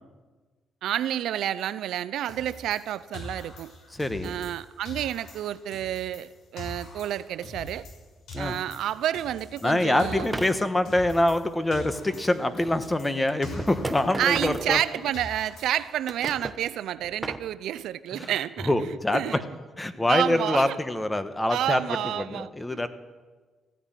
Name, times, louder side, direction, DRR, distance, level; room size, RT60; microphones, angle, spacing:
voice 1, 0.8-3.7 4.2-7.9 8.4-10.3 14.2-19.4 20.1-20.8 21.5-22.5, right 11 dB, 80° right, 16 dB, 0.5 m, -29 dB
sound 1, 2.3-4.6 4.9-8.0 8.3-11.5 11.7-14.9 15.1-16.0, left 2 dB, 75° left, 6.3 m, -43 dB
voice 2, 3.9-4.4 8.3-8.5 9.6-14.8 18.1-18.3 18.6-19.2 19.8-22.9, left 1 dB, 15° left, 10 dB, 1.2 m, -25 dB
sound 2, 8.3-8.4 10.1-10.6 12.3-12.4 13.3-15.2 15.8-16.6 17.0-17.5, right 2 dB, 15° right, 1.0 m, -35 dB
15.5 x 10.0 x 9.1 m, 1.3 s
cardioid pair, 90°, 0 cm